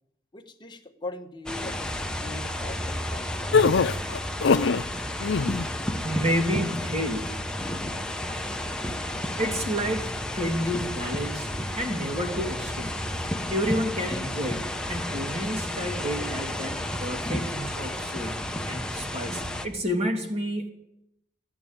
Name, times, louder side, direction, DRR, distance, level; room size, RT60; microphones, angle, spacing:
voice 1, 0.3-3.6, left 2 dB, 25° left, 3 dB, 1.3 m, -40 dB
sound 1, 1.5-19.7, left 1 dB, 5° left, 0.9 m, -32 dB
sound 2, 3.5-4.8 5.2-5.7, left 5 dB, 85° left, 0.5 m, -22 dB
voice 2, 6.0-7.3 9.4-10.1 10.4-11.5 11.7-12.9 13.5-14.6 14.9-18.3 18.7-20.7, equal, 35° right, 3 dB, 2.7 m, -30 dB
15.0 x 10.5 x 8.8 m, 0.82 s
head